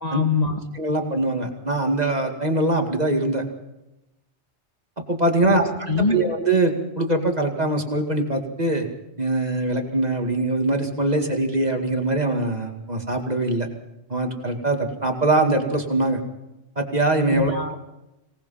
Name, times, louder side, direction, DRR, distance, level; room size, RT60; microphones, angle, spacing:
voice 1, 0.0-0.6 5.4-5.6 5.9-6.2 17.3-17.8, left 4 dB, 35° left, 4 dB, 1.8 m, -23 dB
voice 2, 0.7-3.4 5.1-5.7 6.0-8.9 9.2-13.7 14.1-16.2 16.8-17.5, right 2 dB, 35° right, 4 dB, 2.3 m, -22 dB
25.0 x 19.0 x 5.7 m, 0.94 s
omnidirectional pair, 1.2 m